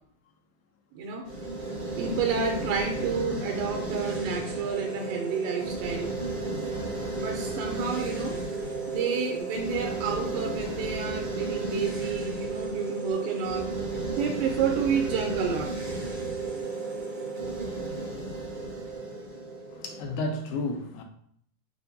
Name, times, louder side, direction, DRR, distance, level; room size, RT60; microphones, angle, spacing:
voice 1, 0.9-1.3 2.0-6.1 7.2-8.4 8.9-13.7 14.1-15.7, right 6 dB, 80° right, 2 dB, 2.1 m, -30 dB
sound 1, 1.2-20.3, right 3 dB, 65° right, 0.8 m, -33 dB
voice 2, 19.7-21.0, left 2 dB, 80° left, 4 dB, 1.8 m, -32 dB
6.8 x 2.6 x 2.6 m, 0.65 s
omnidirectional pair, 3.9 m